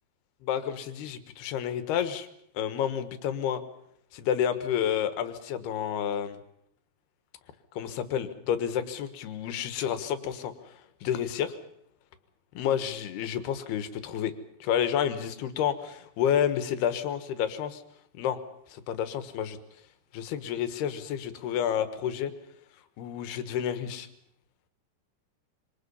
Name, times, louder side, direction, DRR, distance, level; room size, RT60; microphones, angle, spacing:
voice 1, 0.4-2.3 2.5-3.6 4.1-6.4 7.7-10.5 11.0-11.5 12.5-14.3 14.6-17.8 18.1-18.4 18.7-19.6 20.1-22.3 23.0-24.1, left 9 dB, 75° left, 11 dB, 3.3 m, -30 dB
26.5 x 26.0 x 5.5 m, 0.73 s
omnidirectional pair, 4.8 m